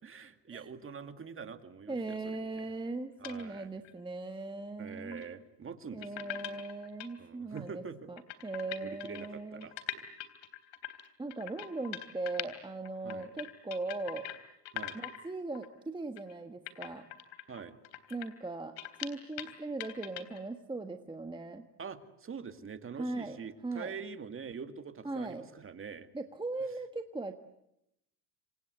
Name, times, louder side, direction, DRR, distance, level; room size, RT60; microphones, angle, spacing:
voice 1, 0.0-2.7 3.2-3.8 4.8-6.6 7.2-8.0 8.8-9.8 13.0-13.3 14.7-15.0 17.5-17.8 21.8-26.1, right 6 dB, 25° right, 9 dB, 2.3 m, -45 dB
voice 2, 1.9-5.2 5.9-9.7 11.2-14.3 15.0-17.1 18.1-21.7 23.0-23.4 23.6-23.9 25.0-25.5 26.1-27.3, right 3 dB, 10° right, 6 dB, 1.6 m, -39 dB
sound 1, 3.2-3.4 3.8-3.9 5.1-5.3 6.0-7.1 7.6-7.7 7.9-8.0 8.2-12.6 12.8-14.4 14.7-15.2 15.5-15.7 16.2-16.3 16.7-19.5 19.8-20.4, left 13 dB, 60° left, 3.6 m, -42 dB
28.5 x 26.0 x 8.1 m, 0.82 s
supercardioid pair, 115°, 48 cm